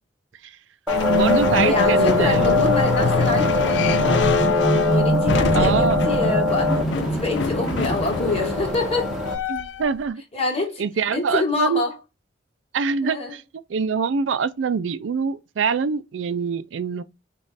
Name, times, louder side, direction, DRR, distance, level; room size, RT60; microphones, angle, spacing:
sound 1, 0.9-10.0, left 4 dB, 70° left, 0.5 m, -24 dB
sound 2, 0.9-9.3, left 1 dB, 5° right, 1.1 m, -22 dB
voice 1, 1.0-2.5 5.5-6.0 9.5-10.2 10.8-11.8 12.7-13.2 13.7-17.0, right 5 dB, 85° right, 0.4 m, -24 dB
voice 2, 1.6-4.2 4.9-9.1 10.3-10.9 11.1-12.0 13.0-13.4, left 3 dB, 35° left, 1.6 m, -26 dB
5.2 x 2.4 x 4.0 m
head